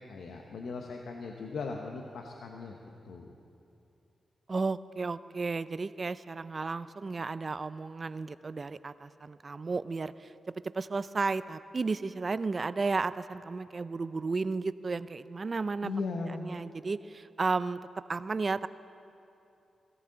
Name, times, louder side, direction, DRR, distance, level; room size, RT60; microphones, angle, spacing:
voice 1, 0.0-2.8 3.0-3.4 15.8-16.6, left 4 dB, 80° left, 2 dB, 0.9 m, -38 dB
voice 2, 4.5-10.3 10.6-15.9 16.4-17.8 18.1-18.7, right 4 dB, 45° right, 15 dB, 0.4 m, -33 dB
16.5 x 16.0 x 3.9 m, 2.7 s
cardioid pair, 65°, 0 cm